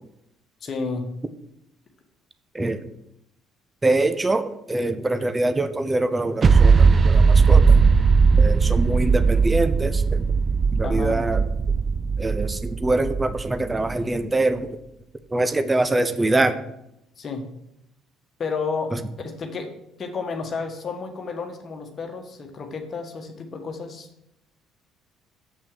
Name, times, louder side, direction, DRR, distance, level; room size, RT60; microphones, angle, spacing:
voice 1, 0.6-1.1 10.8-11.2 17.2-17.5 18.4-19.7 20.0-24.1, left 4 dB, 35° left, 4 dB, 1.6 m, -31 dB
voice 2, 2.5-2.9 3.8-7.9 8.4-10.2 10.7-11.5 12.2-14.8 15.3-16.6 18.9-19.0, right 2 dB, 15° right, 10 dB, 0.8 m, -24 dB
sound 1, 6.4-13.9, right 5 dB, 30° right, 0.4 m, -18 dB
7.7 x 6.2 x 6.3 m, 0.82 s
figure-of-eight pair, 50°, 0 cm